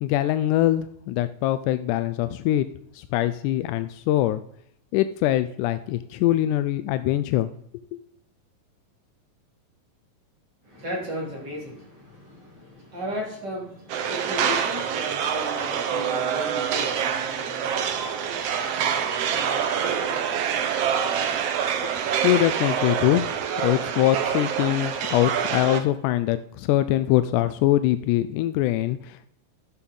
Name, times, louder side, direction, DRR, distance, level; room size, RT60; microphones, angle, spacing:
voice 1, 0.0-2.7 2.9-4.4 4.9-7.5 7.9-8.0 22.2-23.3 23.6-29.3, left 14 dB, 85° left, 11 dB, 1.8 m, -23 dB
voice 2, 10.6-22.3, equal, 30° right, -2 dB, 3.7 m, -37 dB
sound 1, 13.9-25.8, right 8 dB, 70° right, 1.5 m, -26 dB
12.5 x 6.8 x 5.3 m, 0.72 s
omnidirectional pair, 4.0 m